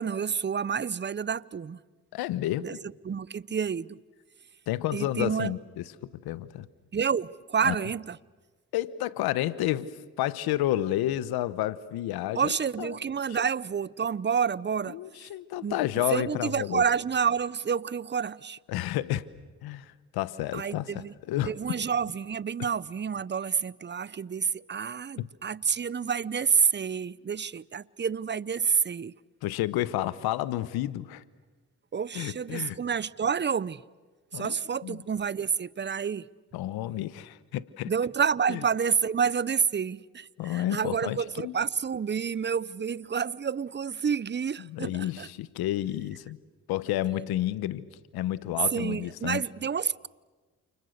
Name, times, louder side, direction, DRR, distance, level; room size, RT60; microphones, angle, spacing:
voice 1, 0.0-1.8 2.6-2.8 3.0-4.0 4.9-5.5 6.9-8.2 12.3-15.0 15.6-15.8 16.1-18.6 20.5-21.1 21.5-29.1 31.9-33.8 34.3-36.3 37.9-45.3 48.7-50.1, right 6 dB, 30° right, 0.7 m, -29 dB
voice 2, 2.1-2.8 4.7-6.7 7.6-7.8 8.7-12.9 13.3-13.4 14.9-16.8 18.7-19.2 19.6-21.5 25.2-25.3 29.4-31.2 32.1-32.8 34.3-34.6 34.8-35.0 36.5-37.9 38.5-38.6 40.4-41.6 44.6-46.4 46.7-49.4, left 14 dB, 90° left, 1.0 m, -31 dB
29.5 x 28.5 x 6.6 m
supercardioid pair, 55°, 36 cm